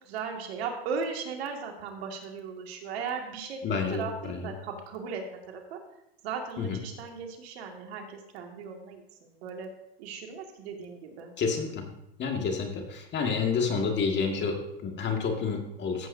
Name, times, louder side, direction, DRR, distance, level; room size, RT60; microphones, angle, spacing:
voice 1, 0.0-3.6 3.9-5.8 6.2-9.7 10.0-11.3, right 5 dB, 75° right, 2 dB, 2.1 m, -37 dB
voice 2, 3.6-4.4 6.6-6.8 11.4-11.9 12.2-16.1, left 5 dB, 35° left, 3 dB, 1.9 m, -29 dB
14.5 x 8.1 x 2.7 m, 0.83 s
supercardioid pair, 110°, 31 cm